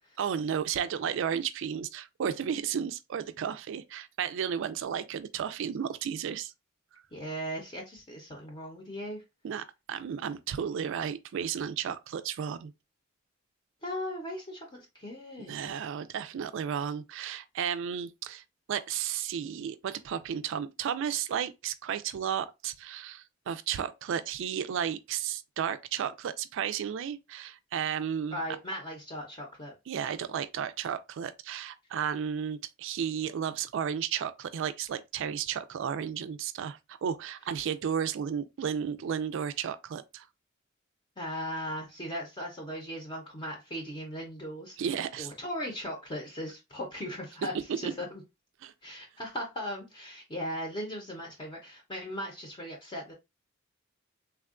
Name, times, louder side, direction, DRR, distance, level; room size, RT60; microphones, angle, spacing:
voice 1, 0.2-6.5 9.4-12.7 15.4-18.4 18.7-28.4 29.9-40.3 44.8-45.3 47.8-47.9 48.6-48.7, right 8 dB, 65° right, 0.3 m, -33 dB
voice 2, 7.1-9.2 13.8-15.7 28.3-29.7 41.2-44.8 45.2-48.2 48.8-53.1, equal, 25° left, 0.6 m, -38 dB
3.4 x 2.2 x 2.4 m
head